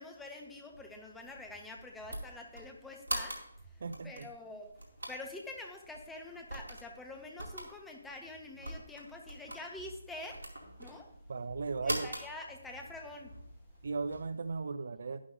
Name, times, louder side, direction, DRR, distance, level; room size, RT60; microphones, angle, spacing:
voice 1, 0.0-3.4 4.0-4.7 5.1-10.4 10.8-11.1 11.8-13.3, left 2 dB, 5° left, 2 dB, 1.1 m, -46 dB
sound 1, 0.7-14.6, right 1 dB, 75° right, 2.4 m, -44 dB
voice 2, 3.8-4.3 11.3-12.1 13.8-15.3, right 4 dB, 50° right, 12 dB, 0.4 m, -37 dB
sound 2, 9.4-14.4, equal, 55° left, 3.4 m, -57 dB
11.0 x 11.0 x 2.6 m, 0.73 s
figure-of-eight pair, 145°, 0 cm